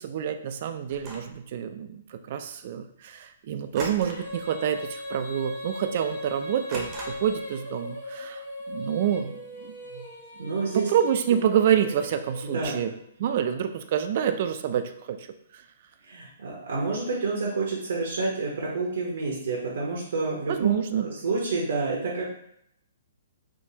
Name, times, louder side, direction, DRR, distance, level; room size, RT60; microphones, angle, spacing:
voice 1, 0.0-10.1 10.7-12.9 13.2-15.3 15.5-15.6 20.5-21.1, right 9 dB, 45° right, 8 dB, 0.3 m, -27 dB
sound 1, 0.9-1.4 3.7-4.4 4.7-5.0 5.4-5.5 6.7-7.4, right 2 dB, 20° right, 0.7 m, -39 dB
Female singing, 4.0-13.2, left 1 dB, 45° left, 1.0 m, -39 dB
voice 2, 10.4-10.9 12.4-12.8 16.1-22.3, right 3 dB, 80° right, -3 dB, 0.9 m, -29 dB
3.5 x 2.6 x 2.8 m, 0.72 s
hypercardioid pair, 155°, 0 cm